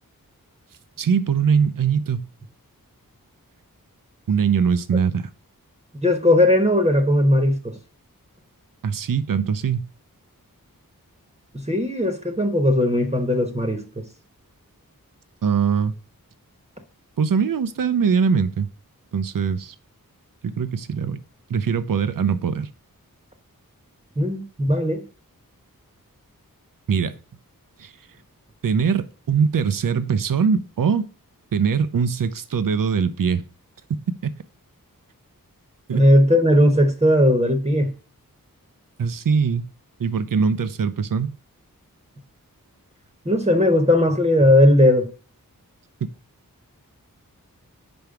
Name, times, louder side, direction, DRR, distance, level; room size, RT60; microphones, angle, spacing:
voice 1, 1.0-2.3 4.3-5.3 8.8-9.9 15.4-15.9 17.2-18.7 19.1-19.7 20.4-21.2 21.5-22.7 26.9-27.2 27.8-27.9 28.6-31.1 31.5-33.4 34.2-34.3 35.9-36.0 39.0-39.7 40.0-41.3, right 6 dB, 70° right, 0.6 m, -22 dB
voice 2, 6.0-7.7 11.5-14.1 24.2-25.0 35.9-37.9 43.2-45.1, left 1 dB, 20° right, 1.0 m, -18 dB
5.2 x 4.6 x 5.8 m
wide cardioid pair, 55°, 35 cm